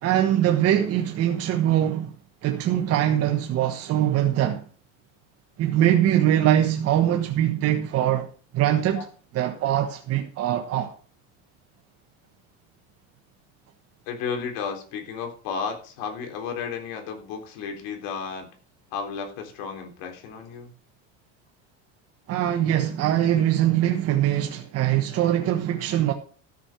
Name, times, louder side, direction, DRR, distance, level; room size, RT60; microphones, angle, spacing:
voice 1, 0.0-2.1 2.4-4.6 5.6-8.3 8.5-9.1 9.3-10.9 22.3-26.1, right 11 dB, 45° right, 1.4 m, -22 dB
voice 2, 14.1-18.5 18.9-20.7 24.6-24.7, left 6 dB, 70° left, 3.8 m, -33 dB
13.5 x 6.6 x 6.0 m
cardioid pair, 135°, 35 cm